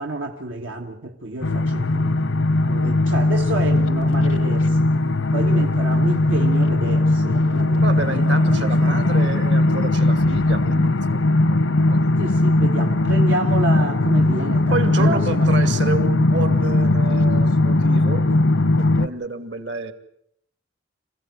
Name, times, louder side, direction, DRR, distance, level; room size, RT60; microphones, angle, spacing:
voice 1, 0.0-4.9 5.3-9.3 12.2-15.5, right 2 dB, 80° right, 1.7 m, -30 dB
sound 1, 1.4-19.1, left 2 dB, 80° left, 0.8 m, -19 dB
voice 2, 7.8-11.3 11.9-12.0 14.7-18.2 18.8-19.9, right 3 dB, 65° right, 2.5 m, -29 dB
27.0 x 16.0 x 9.4 m
head